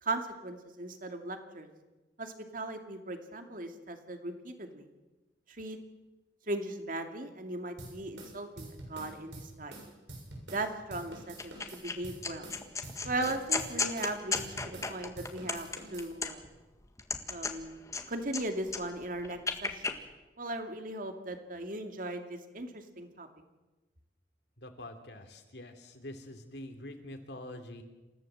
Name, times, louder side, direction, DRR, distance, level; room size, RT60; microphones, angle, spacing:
voice 1, 0.0-1.7 2.2-4.9 5.6-5.8 6.5-9.8 10.5-12.5 13.0-16.4 17.3-17.8 18.1-20.0 20.4-23.3, right 2 dB, 50° right, 6 dB, 2.4 m, -38 dB
sound 1, 7.8-10.7 10.9-14.9 15.2-16.1, right 1 dB, 85° right, 7.3 m, -46 dB
sound 2, 11.4-11.9 12.2-16.6 17.0-18.4 18.7-19.9, left 4 dB, 20° left, 1.8 m, -34 dB
voice 2, 24.6-27.8, left 1 dB, 65° left, 6 dB, 3.1 m, -45 dB
28.0 x 15.5 x 7.8 m, 1.1 s
head